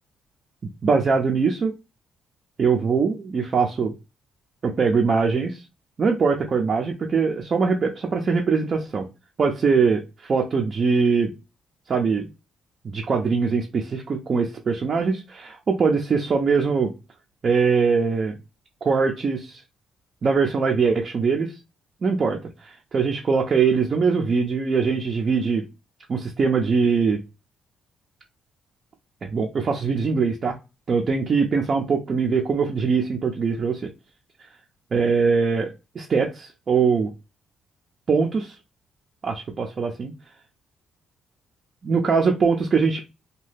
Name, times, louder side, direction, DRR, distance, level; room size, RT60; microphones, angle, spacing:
voice 1, 0.8-1.7 2.6-3.9 4.6-5.6 6.0-9.1 9.4-11.3 11.9-12.3 12.8-16.9 17.4-18.4 18.8-19.6 20.2-21.5 22.0-25.6 26.1-27.2 29.2-30.6 30.9-33.9 34.9-35.7 35.9-37.1 38.1-38.5 39.2-40.1 41.8-43.0, right 5 dB, 45° right, 0.5 m, -22 dB
2.7 x 2.2 x 3.3 m
cardioid pair, 90°, 0 cm